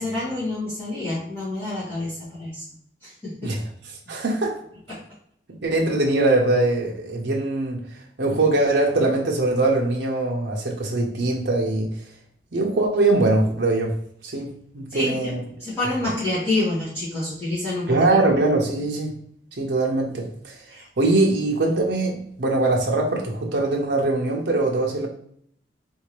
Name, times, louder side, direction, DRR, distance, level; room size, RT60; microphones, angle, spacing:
voice 1, 0.0-2.6 3.0-3.6 4.9-5.0 14.9-18.1 20.7-20.8, left 2 dB, 15° left, -12 dB, 1.5 m, -28 dB
voice 2, 4.1-4.5 5.6-7.8 8.2-11.9 12.5-14.0 14.2-15.4 17.9-19.1 19.6-20.5 21.0-25.1, right 2 dB, 75° right, -1 dB, 0.7 m, -22 dB
3.7 x 2.7 x 3.1 m, 0.64 s
head